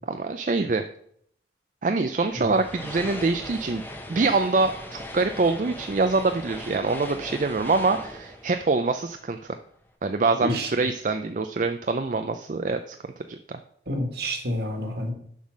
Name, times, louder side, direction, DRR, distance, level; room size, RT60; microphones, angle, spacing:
voice 1, 0.1-0.8 1.8-3.8 4.1-9.6 10.0-13.0 13.3-13.6, right 3 dB, 45° right, 7 dB, 0.4 m, -25 dB
sound 1, 2.2-9.6, left 1 dB, 10° left, 0.9 m, -39 dB
voice 2, 10.4-10.7 13.9-15.1, equal, 65° right, 4 dB, 1.9 m, -29 dB
7.2 x 5.7 x 6.4 m, 0.66 s
head